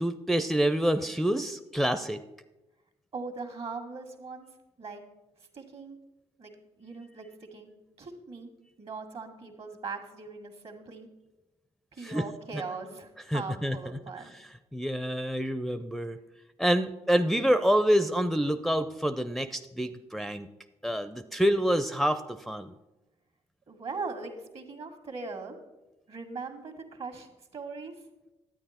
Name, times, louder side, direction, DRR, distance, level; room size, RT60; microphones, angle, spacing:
voice 1, 0.0-2.2 12.0-12.2 12.5-12.6 13.3-13.8 14.7-16.2 16.6-20.5 20.8-22.7, equal, ahead, 9 dB, 0.5 m, -27 dB
voice 2, 3.1-4.5 4.8-5.0 5.5-6.0 6.4-6.5 6.8-7.7 8.0-8.5 8.8-11.1 11.9-14.3 23.7-25.6 26.1-28.0, right 4 dB, 55° right, 6 dB, 1.8 m, -40 dB
11.0 x 8.8 x 4.3 m, 1.0 s
supercardioid pair, 55°, 12 cm